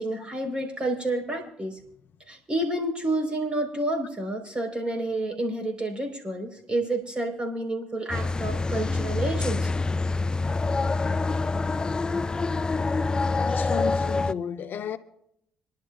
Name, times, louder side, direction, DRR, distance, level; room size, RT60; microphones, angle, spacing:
voice 1, 0.0-1.8 2.3-9.7, right 1 dB, 25° right, 4.0 m, -29 dB
sound 1, 8.1-14.3, left 3 dB, 20° left, 0.4 m, -26 dB
voice 2, 13.3-15.0, left 8 dB, 60° left, 0.8 m, -33 dB
26.5 x 11.5 x 2.4 m
supercardioid pair, 65°, 4 cm